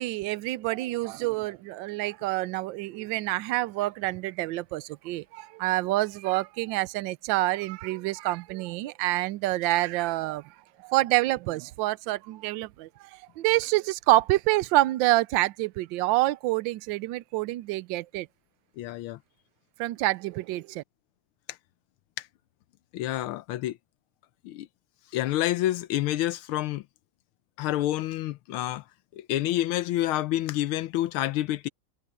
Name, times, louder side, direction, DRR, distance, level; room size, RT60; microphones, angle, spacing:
voice 1, 0.0-18.3 19.8-20.8, right 18 dB, 75° right, 1.2 m, -27 dB
voice 2, 18.8-19.2 21.5-21.6 22.2-22.3 22.9-23.8 24.4-24.7 25.1-26.8 27.6-28.8 29.1-31.7, left 14 dB, 85° left, 1.5 m, -28 dB
omnidirectional pair, 2.3 m